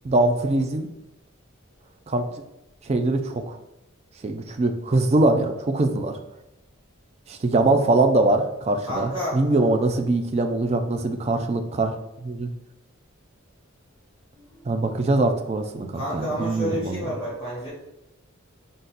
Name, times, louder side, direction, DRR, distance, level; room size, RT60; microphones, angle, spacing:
voice 1, 0.0-0.9 2.1-2.2 2.9-3.6 4.2-6.1 7.3-12.5 14.7-17.0, right 2 dB, 30° right, 6 dB, 0.3 m, -22 dB
voice 2, 8.9-9.8 14.3-14.7 15.9-17.7, equal, 10° right, -9 dB, 1.2 m, -30 dB
3.9 x 2.5 x 3.9 m, 0.89 s
head